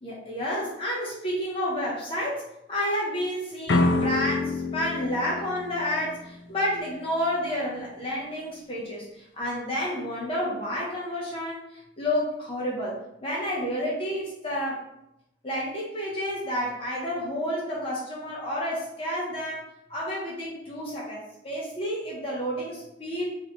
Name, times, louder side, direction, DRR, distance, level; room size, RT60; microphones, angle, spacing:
voice 1, 0.0-2.4 2.7-14.8 15.4-19.6 19.9-23.4, equal, 30° left, -4 dB, 0.7 m, -30 dB
sound 1, 3.7-6.6, left 3 dB, 70° left, 0.4 m, -27 dB
3.1 x 3.0 x 4.0 m, 0.86 s
head